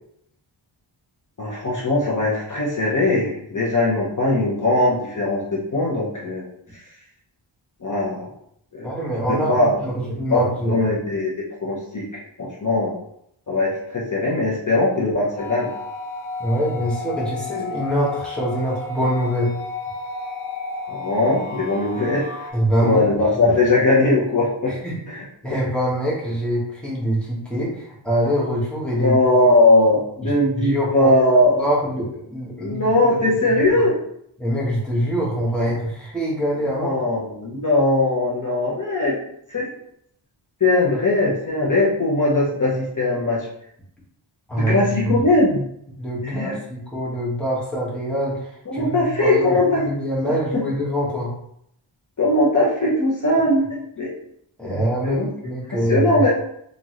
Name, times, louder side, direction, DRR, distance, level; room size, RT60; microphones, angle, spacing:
voice 1, 1.4-6.4 6.7-6.8 7.8-8.3 8.7-8.9 9.3-9.8 10.3-13.0 13.5-15.7 20.9-22.5 22.8-24.8 25.1-25.2 25.5-25.6 29.0-31.6 32.6-34.0 36.7-39.2 39.5-39.7 40.6-43.5 44.6-45.6 46.2-46.5 48.7-49.8 50.2-50.6 52.2-54.1 54.6-56.3, left 2 dB, 40° left, -5 dB, 1.1 m, -20 dB
voice 2, 8.8-10.9 16.4-19.5 22.5-23.0 23.4-23.5 24.8-25.0 25.4-29.2 30.2-30.3 30.6-31.1 31.5-33.1 33.5-33.6 34.4-37.0 44.5-45.2 46.0-51.3 54.6-56.2, equal, ahead, -6 dB, 1.6 m, -24 dB
sound 1, 15.4-22.5, left 3 dB, 80° left, 0.9 m, -32 dB
3.9 x 3.6 x 3.1 m, 0.73 s
wide cardioid pair, 100°, 47 cm